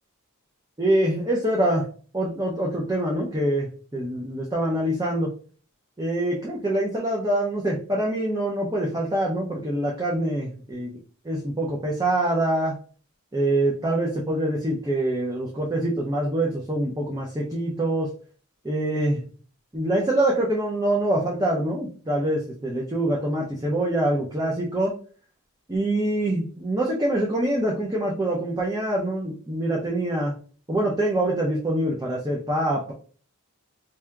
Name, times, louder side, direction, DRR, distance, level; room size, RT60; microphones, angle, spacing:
voice 1, 0.8-1.8 2.1-5.3 6.0-11.0 11.2-12.8 13.3-18.1 18.6-19.2 19.7-25.0 25.7-30.3 30.7-32.9, right 1 dB, 15° right, -3 dB, 0.5 m, -25 dB
4.5 x 2.7 x 2.3 m, 0.41 s
head